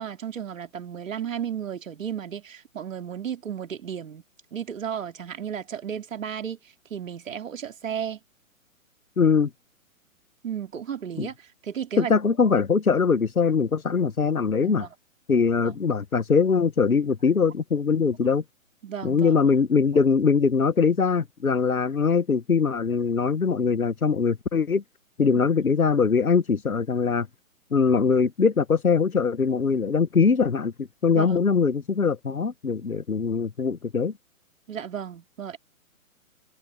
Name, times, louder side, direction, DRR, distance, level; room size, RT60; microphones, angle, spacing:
voice 1, 0.0-4.2 4.5-6.6 6.9-8.2 10.4-12.1 14.6-14.9 15.6-15.8 18.8-19.4 25.3-25.4 31.1-31.4 34.7-35.6, right 8 dB, 65° right, 2.3 m, -34 dB
voice 2, 9.2-9.5 11.2-11.3 12.0-14.9 15.3-18.4 19.0-24.8 25.2-27.3 27.7-34.1, left 5 dB, 90° left, 1.2 m, -22 dB
figure-of-eight pair, 125°, 42 cm